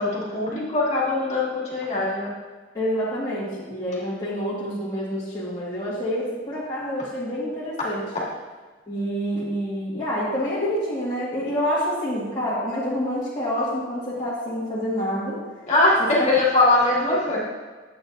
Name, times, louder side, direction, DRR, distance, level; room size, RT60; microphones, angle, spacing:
voice 1, 0.0-2.3 15.7-17.4, left 2 dB, 35° left, -6 dB, 2.2 m, -21 dB
voice 2, 2.7-8.0 8.9-15.4 16.2-16.3, equal, 20° left, -11 dB, 1.9 m, -27 dB
10.0 x 8.1 x 2.7 m, 1.3 s
head